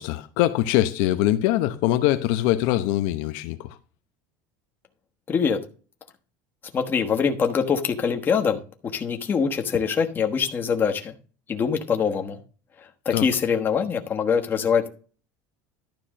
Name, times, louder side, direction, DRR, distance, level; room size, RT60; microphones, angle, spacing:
voice 1, 0.0-3.8 13.1-13.3, left 14 dB, 60° left, 0.8 m, -23 dB
voice 2, 5.3-5.6 6.7-8.6 8.9-11.1 11.5-12.4 12.8-14.9, left 6 dB, 20° left, 1.2 m, -23 dB
12.0 x 4.3 x 6.4 m
cardioid pair, 170°, 10 cm